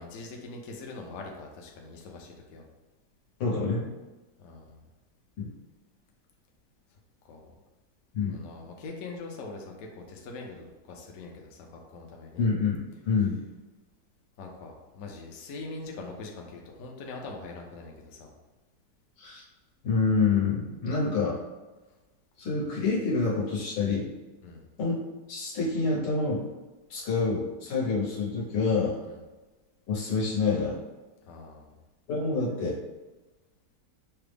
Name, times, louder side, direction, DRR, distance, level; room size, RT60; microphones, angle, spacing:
voice 1, 0.0-2.6 4.4-4.8 7.2-7.5 8.3-12.5 14.4-18.3 24.4-24.6 29.1-29.2 31.3-31.7, left 3 dB, 65° left, 1 dB, 0.9 m, -43 dB
voice 2, 3.4-3.9 5.4-5.5 8.1-8.4 12.4-13.4 19.2-19.4 19.8-21.4 22.4-24.1 24.8-25.0 25.3-26.5 26.9-29.0 29.9-30.8 32.1-32.8, left 4 dB, 85° left, -5 dB, 1.7 m, -27 dB
5.7 x 2.0 x 3.3 m, 1.1 s
omnidirectional pair, 1.9 m